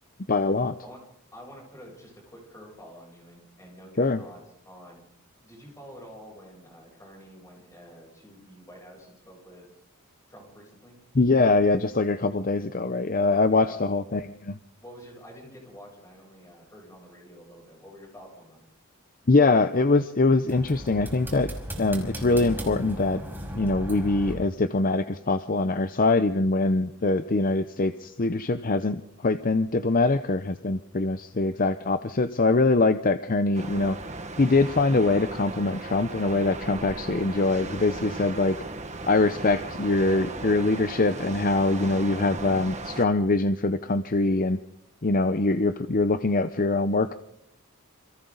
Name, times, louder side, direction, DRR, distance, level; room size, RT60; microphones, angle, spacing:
voice 1, 0.3-0.7 4.0-4.2 11.1-14.5 19.3-21.5 21.8-23.2 23.5-34.0 34.4-38.6 39.1-44.6 45.0-47.1, left 3 dB, 40° left, 11 dB, 0.7 m, -23 dB
voice 2, 1.3-5.0 5.4-9.7 10.3-11.0 13.5-13.9 14.8-18.6, equal, 15° left, -2 dB, 8.0 m, -48 dB
sound 1, 20.5-24.3, equal, 10° right, 5.4 m, -36 dB
sound 2, 33.5-43.1, right 2 dB, 30° right, 1.7 m, -37 dB
28.5 x 26.0 x 4.0 m, 0.79 s
head